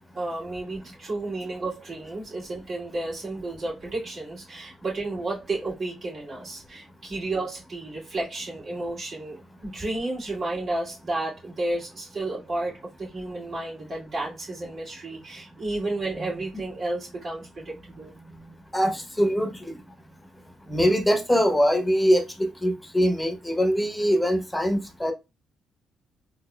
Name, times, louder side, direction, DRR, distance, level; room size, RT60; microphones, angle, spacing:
voice 1, 0.1-18.1, right 2 dB, 55° right, 2.2 m, -32 dB
voice 2, 18.7-19.5 20.7-22.2 22.6-25.1, equal, 10° left, 0.8 m, -22 dB
4.0 x 2.8 x 2.2 m
cardioid pair, 75°, 0 cm